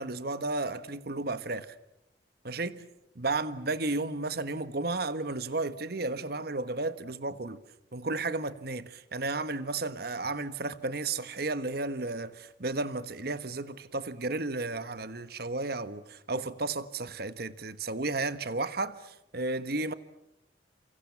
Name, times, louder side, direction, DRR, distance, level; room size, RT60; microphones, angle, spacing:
voice 1, 0.0-1.7 2.4-2.8 3.1-7.6 7.9-19.9, right 3 dB, 55° right, 1.4 m, -33 dB
30.0 x 26.5 x 7.2 m
head